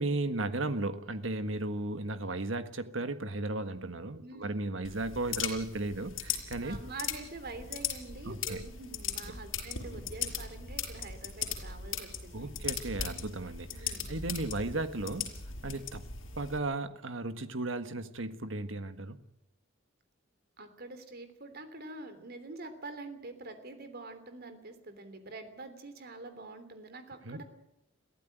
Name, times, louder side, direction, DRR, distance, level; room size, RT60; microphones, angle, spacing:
voice 1, 0.0-6.8 8.2-8.6 12.3-15.3 15.6-16.0 16.4-19.2 27.2-27.4, right 2 dB, 75° right, 10 dB, 1.6 m, -35 dB
voice 2, 4.2-4.7 6.6-12.5 13.7-14.1 20.6-27.4, right 2 dB, 55° right, 9 dB, 3.3 m, -46 dB
sound 1, 4.8-16.6, left 7 dB, 85° left, 5.2 m, -38 dB
22.5 x 15.0 x 9.3 m, 0.86 s
head